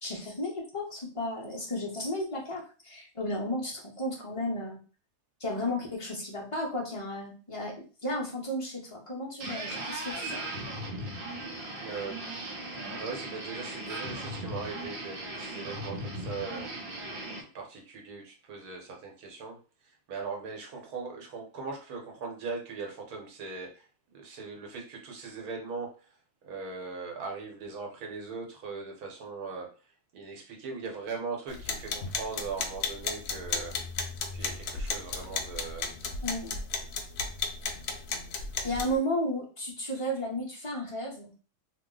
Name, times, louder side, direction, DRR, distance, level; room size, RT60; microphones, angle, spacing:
voice 1, 0.0-4.8 5.4-10.4 36.2-36.6 38.6-41.3, left 1 dB, 35° left, -3 dB, 0.5 m, -33 dB
sound 1, 9.4-17.4, right 1 dB, 45° right, 0.8 m, -38 dB
voice 2, 11.8-12.3 12.9-16.7 17.5-19.6 20.1-23.9 24.1-25.9 26.4-29.7 30.1-33.8 34.3-35.9, right 4 dB, 70° right, 1 dB, 1.4 m, -39 dB
sound 2, 31.5-39.0, left 4 dB, 85° left, 0.5 m, -35 dB
2.9 x 2.1 x 3.7 m, 0.36 s
omnidirectional pair, 1.7 m